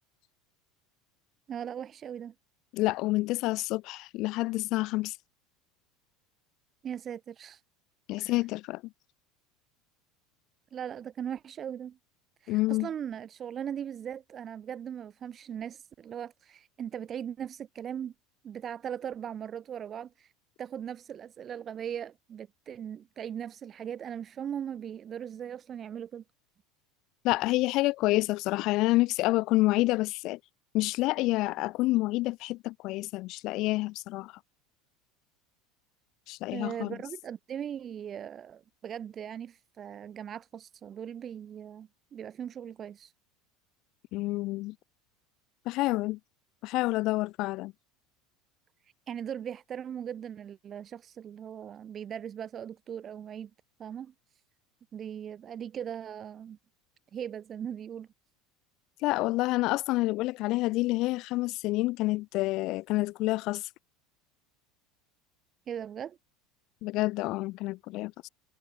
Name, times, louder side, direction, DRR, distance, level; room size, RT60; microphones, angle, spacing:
voice 1, 1.5-2.3 6.8-7.6 8.2-8.3 10.7-12.0 12.4-18.1 18.4-20.3 20.6-26.2 36.5-43.1 49.1-53.5 53.8-54.1 54.9-56.6 57.1-58.1 65.7-66.2, right 9 dB, 35° right, 6.8 m, -39 dB
voice 2, 2.7-5.2 8.1-8.8 12.5-12.9 27.2-30.4 30.7-34.3 36.3-37.0 44.1-44.7 45.7-46.2 46.6-47.7 59.0-63.7 66.8-68.3, left 19 dB, 60° left, 2.0 m, -28 dB
hypercardioid pair, 95°, 0 cm